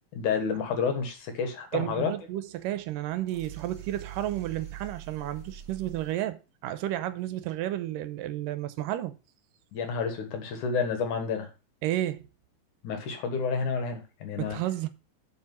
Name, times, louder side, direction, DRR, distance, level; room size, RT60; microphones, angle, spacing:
voice 1, 0.1-2.1 9.7-11.5 12.8-14.6, left 5 dB, 65° left, 2.8 m, -30 dB
voice 2, 1.7-9.2 11.8-12.3 14.4-14.9, right 13 dB, 80° right, 2.3 m, -32 dB
sound 1, 3.3-6.2, right 9 dB, 40° right, 1.7 m, -44 dB
7.5 x 5.6 x 5.9 m
omnidirectional pair, 3.9 m